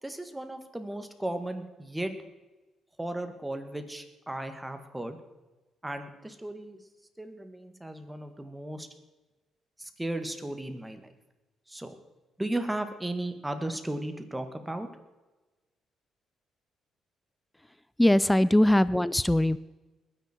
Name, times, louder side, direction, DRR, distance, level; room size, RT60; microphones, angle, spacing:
voice 1, 0.0-2.1 3.0-5.2 5.8-6.8 7.2-8.9 9.8-11.1 11.7-12.0 12.4-14.9, right 1 dB, 10° right, 7 dB, 1.9 m, -35 dB
voice 2, 18.0-19.6, left 1 dB, 5° left, 17 dB, 0.5 m, -21 dB
21.0 x 10.0 x 4.5 m, 1.1 s
cardioid pair, 90°, 0 cm